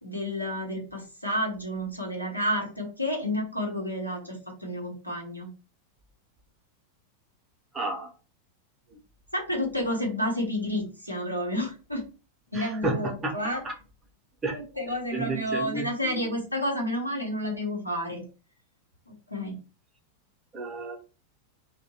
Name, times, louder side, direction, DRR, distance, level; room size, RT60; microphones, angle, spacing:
voice 1, 0.0-5.5 9.3-12.0 12.5-13.6 14.5-18.2 19.1-19.6, left 1 dB, 90° left, 0 dB, 0.8 m, -30 dB
voice 2, 7.7-8.1 8.9-9.0 12.5-13.4 13.6-13.7 14.4-14.6 15.1-16.2 20.5-21.0, right 3 dB, 20° right, -1 dB, 0.6 m, -31 dB
2.6 x 2.1 x 2.7 m, 0.34 s
figure-of-eight pair, 90°, 0 cm